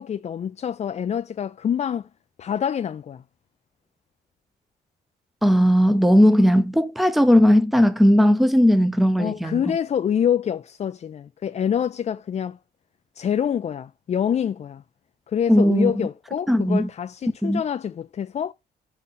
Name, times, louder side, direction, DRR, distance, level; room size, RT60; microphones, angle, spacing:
voice 1, 0.0-2.1 2.4-3.2 9.2-12.6 13.2-14.8 15.3-18.5, left 8 dB, 35° left, 0.4 m, -26 dB
voice 2, 5.4-9.6 15.5-15.9 16.5-16.9 17.4-17.6, equal, ahead, 0.7 m, -17 dB
4.9 x 4.2 x 5.5 m
cardioid pair, 90°, 20 cm